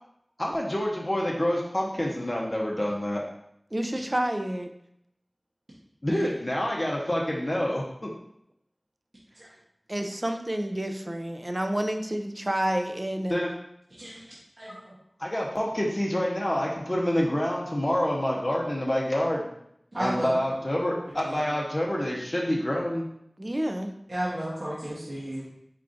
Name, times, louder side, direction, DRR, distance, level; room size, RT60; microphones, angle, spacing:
voice 1, 0.4-3.2 6.0-8.1 13.3-13.5 14.7-14.8 15.2-19.5 20.0-23.1, left 1 dB, 35° left, -2 dB, 0.6 m, -27 dB
voice 2, 3.7-4.7 9.9-13.4 23.4-23.9, right 1 dB, 30° right, 6 dB, 0.4 m, -29 dB
voice 3, 14.6-14.9 19.9-20.4 21.2-21.4 24.1-25.4, right 1 dB, 65° right, -8 dB, 1.0 m, -33 dB
4.4 x 3.7 x 2.5 m, 0.76 s
wide cardioid pair, 50°, 0 cm